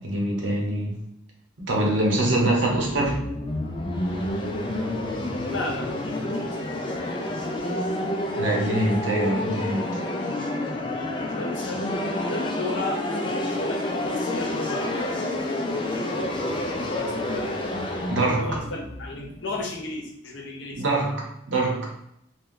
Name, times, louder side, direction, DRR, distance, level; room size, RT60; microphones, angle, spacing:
voice 1, 0.0-1.0 1.6-3.2 8.4-10.0 18.1-18.6 20.8-21.9, right 1 dB, 75° right, -1 dB, 0.9 m, -24 dB
sound 1, 2.1-19.9, left 1 dB, 25° left, 0.3 m, -29 dB
voice 2, 5.5-6.5 10.9-13.0 13.4-15.1 16.7-17.9 18.4-20.8, left 2 dB, 75° left, 0 dB, 0.7 m, -35 dB
2.6 x 2.2 x 3.6 m, 0.76 s
head